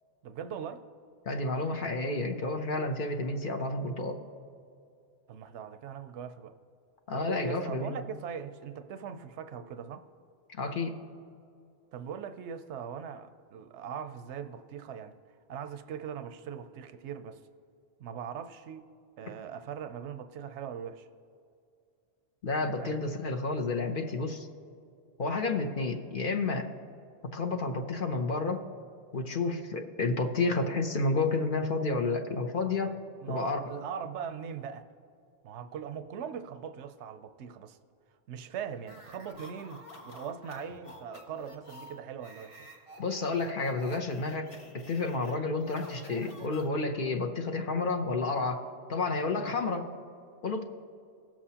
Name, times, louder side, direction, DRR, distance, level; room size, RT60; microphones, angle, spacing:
voice 1, 0.2-0.8 5.3-6.5 7.1-10.1 11.9-15.1 15.5-17.4 18.0-18.9 19.2-21.1 22.8-22.9 33.2-34.9 35.4-37.8 38.3-42.7, right 7 dB, 85° right, 9 dB, 0.9 m, -40 dB
voice 2, 1.3-4.2 7.1-8.0 10.5-10.9 22.4-24.5 25.2-26.7 27.3-28.7 29.1-33.0 33.3-33.7 43.0-44.5 44.7-49.9 50.4-50.6, left 3 dB, 55° left, 5 dB, 0.9 m, -30 dB
sound 1, 38.8-47.1, left 1 dB, 30° left, 1.2 m, -50 dB
18.5 x 7.5 x 2.8 m, 2.5 s
omnidirectional pair, 1.1 m